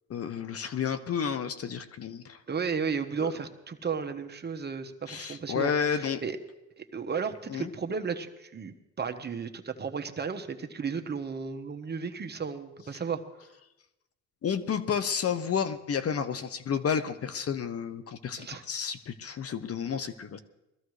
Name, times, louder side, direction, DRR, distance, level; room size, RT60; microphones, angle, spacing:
voice 1, 0.1-2.4 3.2-3.3 5.1-6.2 7.5-7.7 14.4-20.4, left 7 dB, 50° left, 11 dB, 0.9 m, -31 dB
voice 2, 2.5-6.4 6.8-13.2 18.4-18.6, right 6 dB, 35° right, 6 dB, 1.1 m, -34 dB
21.5 x 14.0 x 3.2 m, 0.97 s
cardioid pair, 90°, 30 cm